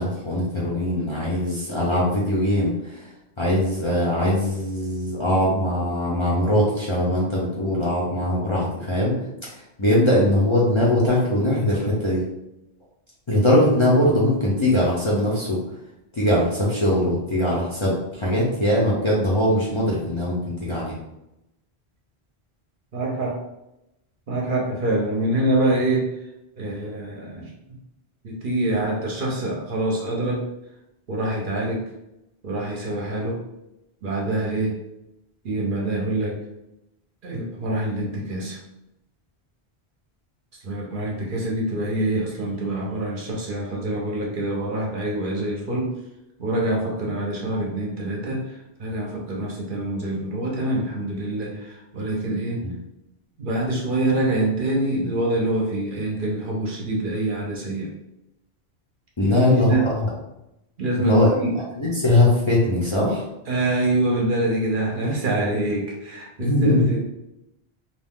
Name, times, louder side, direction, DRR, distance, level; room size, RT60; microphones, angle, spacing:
voice 1, 0.0-3.1 3.4-9.1 9.8-12.3 13.3-15.6 16.1-20.9 52.6-52.7 59.2-60.1 61.0-61.3 61.8-63.2 66.4-66.9, left 1 dB, 35° left, -6 dB, 0.6 m, -21 dB
voice 2, 22.9-23.4 24.3-26.1 26.6-27.5 28.2-30.5 31.1-31.8 32.4-33.4 34.0-34.8 35.4-36.4 37.2-38.6 40.6-45.9 46.4-52.6 53.4-57.9 59.2-59.9 60.8-61.6 63.5-67.1, right 1 dB, 55° right, -2 dB, 0.8 m, -25 dB
2.5 x 2.3 x 3.5 m, 0.88 s
omnidirectional pair, 1.1 m